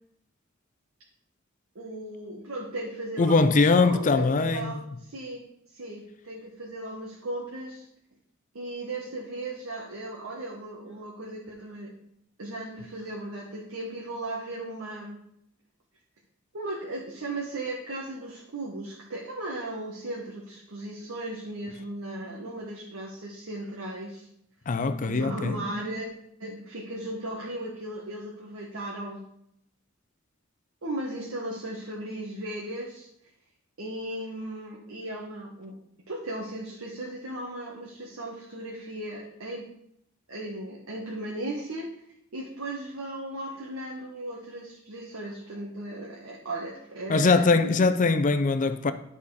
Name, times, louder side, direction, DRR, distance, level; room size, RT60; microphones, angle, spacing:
voice 1, 1.7-7.8 8.5-11.9 12.4-15.2 16.5-24.3 25.0-26.1 26.4-29.2 30.8-33.1 33.8-35.7 36.1-39.7 40.3-41.9 42.3-47.9, right 1 dB, 75° right, 1.3 m, -36 dB
voice 2, 3.2-4.8 24.7-25.6 47.1-48.9, left 3 dB, 40° left, 0.5 m, -22 dB
11.0 x 4.2 x 4.8 m
head